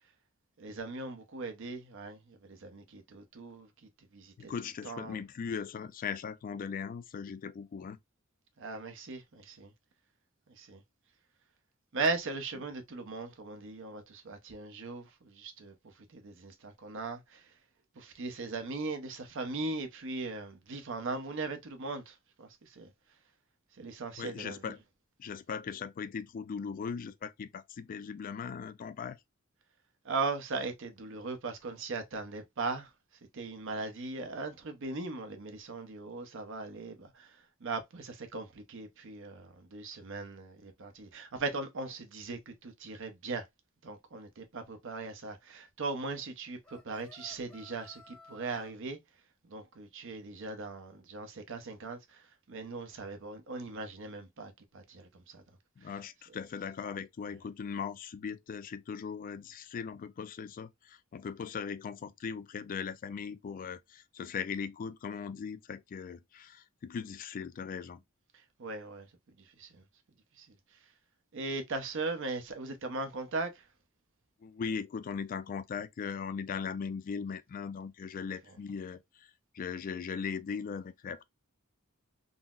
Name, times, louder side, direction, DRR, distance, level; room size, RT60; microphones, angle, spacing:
voice 1, 0.6-5.2 8.6-9.7 10.5-10.8 11.9-17.5 18.0-22.9 23.7-24.7 30.0-32.9 33.3-43.5 43.8-49.0 49.4-55.4 55.8-55.9 56.3-56.4 68.3-69.8 70.4-70.5 71.3-73.7 78.5-78.6, right 3 dB, 65° right, 0.7 m, -39 dB
voice 2, 4.4-8.0 24.2-24.8 25.2-29.2 55.8-68.0 74.4-79.0 79.5-81.2, left 6 dB, 40° left, 0.3 m, -39 dB
sound 1, 46.6-48.7, left 2 dB, 5° left, 0.8 m, -56 dB
3.8 x 2.0 x 2.3 m
head